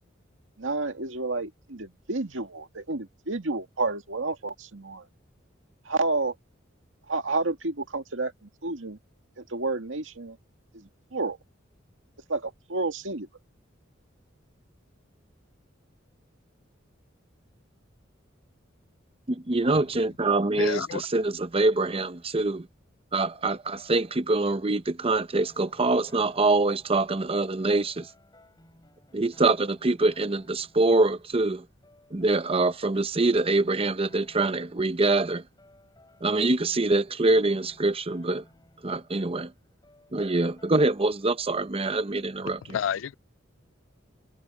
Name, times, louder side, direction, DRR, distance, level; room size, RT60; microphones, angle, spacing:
voice 1, 0.6-5.1 5.8-6.4 7.1-9.0 9.4-10.4 10.7-11.4 12.3-13.3, right 3 dB, 80° right, 2.1 m, -30 dB
voice 2, 19.3-22.7 23.1-28.1 29.1-31.7 32.1-35.4 36.2-38.4 38.8-39.5 40.1-42.6, right 2 dB, 30° right, 0.8 m, -24 dB
voice 3, 20.6-21.0 42.7-43.1, left 8 dB, 80° left, 0.4 m, -29 dB
sound 1, 25.3-41.2, left 1 dB, 20° left, 7.2 m, -58 dB
head